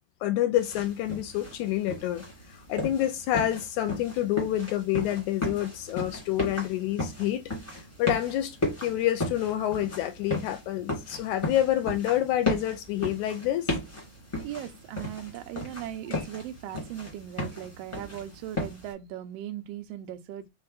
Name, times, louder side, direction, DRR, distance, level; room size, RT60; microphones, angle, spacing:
voice 1, 0.2-2.2 2.7-7.4 8.0-13.7 16.1-16.2, left 13 dB, 80° left, 1.8 m, -28 dB
sound 1, 0.5-18.9, left 2 dB, 20° left, 0.8 m, -35 dB
voice 2, 14.4-20.4, right 11 dB, 85° right, 1.4 m, -38 dB
5.1 x 2.5 x 3.8 m
omnidirectional pair, 3.7 m